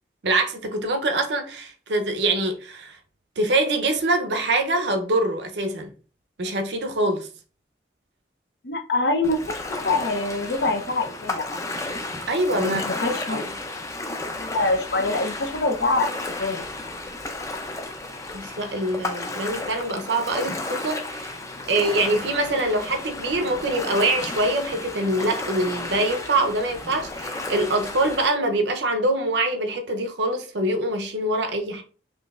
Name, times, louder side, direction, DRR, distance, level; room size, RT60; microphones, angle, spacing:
voice 1, 0.2-3.0 3.4-5.9 6.4-7.3 12.3-12.8 13.3-13.5 18.3-21.4 21.7-31.8, right 2 dB, 75° right, 0.6 m, -24 dB
voice 2, 8.6-11.6 12.5-13.4 14.1-16.7, left 2 dB, 65° left, 0.7 m, -25 dB
Ocean, 9.2-28.3, left 2 dB, 15° left, 0.4 m, -33 dB
3.9 x 3.1 x 2.4 m
head